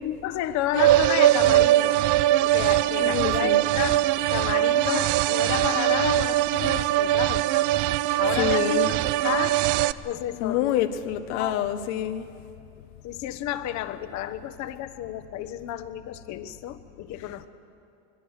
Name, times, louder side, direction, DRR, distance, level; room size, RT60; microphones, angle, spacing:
voice 1, 0.0-2.0 2.4-4.0 4.3-7.5 8.1-9.6 10.0-10.9 11.3-11.6 13.0-17.5, left 12 dB, 55° left, 11 dB, 1.3 m, -31 dB
sound 1, 0.7-9.9, right 15 dB, 60° right, 0.7 m, -21 dB
voice 2, 3.0-3.6 8.1-8.9 10.4-12.2, left 11 dB, 75° left, 7 dB, 1.2 m, -27 dB
22.0 x 22.0 x 6.6 m, 2.5 s
supercardioid pair, 95°, 34 cm